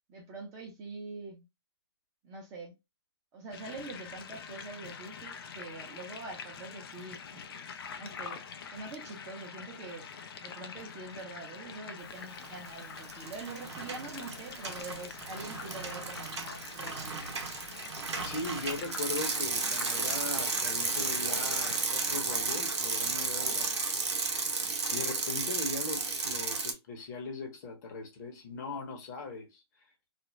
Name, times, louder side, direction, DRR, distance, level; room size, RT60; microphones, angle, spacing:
voice 1, 0.1-1.4 2.2-2.7 3.3-7.4 8.0-8.4 8.7-10.1 10.4-17.3, right 3 dB, 20° right, 0.7 m, -44 dB
sound 1, 3.5-21.9, left 6 dB, 55° left, 0.5 m, -45 dB
Bicycle, 12.3-12.7 13.0-26.7, right 4 dB, 85° right, 0.8 m, -33 dB
voice 2, 18.2-29.6, left 3 dB, 40° left, 1.0 m, -40 dB
2.5 x 2.1 x 3.1 m
hypercardioid pair, 150°, 14 cm